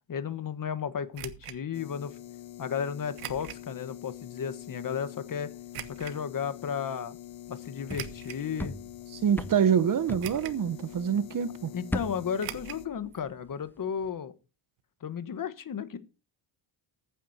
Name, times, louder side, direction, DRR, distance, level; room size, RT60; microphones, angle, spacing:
voice 1, 0.1-2.2 2.6-5.5 6.0-7.2 7.5-8.8 11.7-14.3 15.0-16.0, left 7 dB, 40° left, 1.3 m, -34 dB
sound 1, 1.1-1.6 3.2-3.7 4.2-4.3 5.7-6.2 7.9-8.5 9.1-9.2 10.2-10.7 10.9-11.0 12.4-12.8 13.1-13.2 13.5-13.6, right 13 dB, 90° right, 1.4 m, -41 dB
sound 2, 1.7-12.9, left 13 dB, 60° left, 1.4 m, -45 dB
sound 3, 7.5-11.2 11.5-13.5 13.8-14.1, equal, 5° left, 0.6 m, -39 dB
voice 2, 9.1-11.7, right 8 dB, 40° right, 0.8 m, -26 dB
14.5 x 9.4 x 4.1 m
cardioid pair, 145°, 50 cm